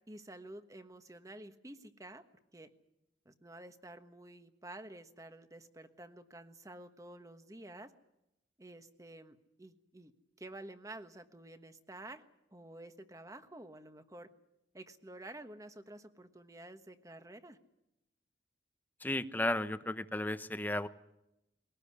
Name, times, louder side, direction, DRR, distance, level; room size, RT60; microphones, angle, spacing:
voice 1, 0.1-2.2 2.5-2.7 3.2-7.9 8.6-10.1 10.4-12.2 12.5-14.3 14.7-17.6, right 1 dB, 20° right, 9 dB, 1.3 m, -50 dB
voice 2, 19.0-20.9, left 1 dB, 10° left, 12 dB, 0.8 m, -34 dB
22.0 x 18.5 x 9.8 m, 0.89 s
head